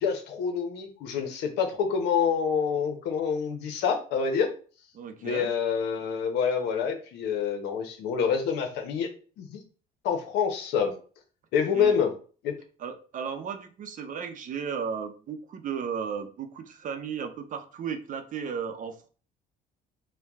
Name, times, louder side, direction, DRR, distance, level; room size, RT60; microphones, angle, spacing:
voice 1, 0.0-4.5 5.2-9.1 9.4-9.6 10.0-10.9 11.5-12.1 12.4-12.5, left 6 dB, 85° left, 4 dB, 0.9 m, -27 dB
voice 2, 4.9-5.5 11.7-12.0 12.8-19.1, right 7 dB, 50° right, 8 dB, 0.7 m, -35 dB
4.5 x 2.2 x 3.5 m, 0.39 s
cardioid pair, 110°, 17 cm